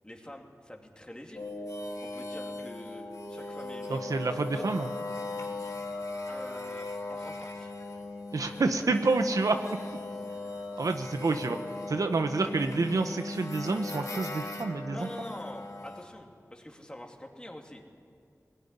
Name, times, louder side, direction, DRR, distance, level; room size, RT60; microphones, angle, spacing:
voice 1, 0.0-1.4 2.0-3.0 3.3-4.7 6.3-7.7 8.5-8.6 14.9-17.8, left 1 dB, 15° left, 2 dB, 2.8 m, -45 dB
sound 1, 1.3-16.0, left 2 dB, 70° left, 2.7 m, -38 dB
voice 2, 3.9-4.9 8.3-9.6 10.8-11.6 11.9-15.1, right 3 dB, 80° right, 6 dB, 1.0 m, -28 dB
20.5 x 18.0 x 10.0 m, 2.3 s
wide cardioid pair, 65°, 6 cm